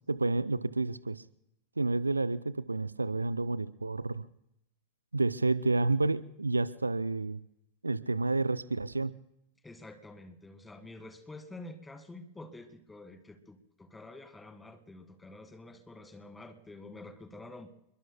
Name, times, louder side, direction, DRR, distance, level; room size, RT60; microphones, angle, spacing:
voice 1, 0.1-1.2 1.8-4.2 5.1-7.4 7.8-9.1, right 3 dB, 80° right, 17 dB, 0.5 m, -30 dB
voice 2, 9.6-17.7, left 2 dB, 10° left, 8 dB, 1.8 m, -48 dB
29.0 x 22.0 x 2.2 m, 0.80 s
figure-of-eight pair, 90°, 0 cm